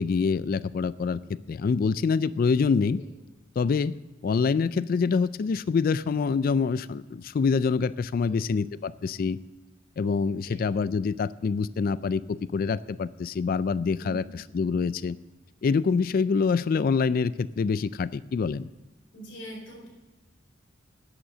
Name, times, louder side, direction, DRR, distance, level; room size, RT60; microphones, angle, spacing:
voice 1, 0.0-3.0 3.6-4.0 4.2-9.4 10.0-15.2 15.6-18.7, left 5 dB, 50° left, 17 dB, 0.3 m, -26 dB
voice 2, 8.2-8.5 10.5-10.6 13.9-14.2 19.1-19.9, right 1 dB, 70° left, -2 dB, 4.8 m, -43 dB
11.5 x 8.8 x 6.6 m, 1.2 s
head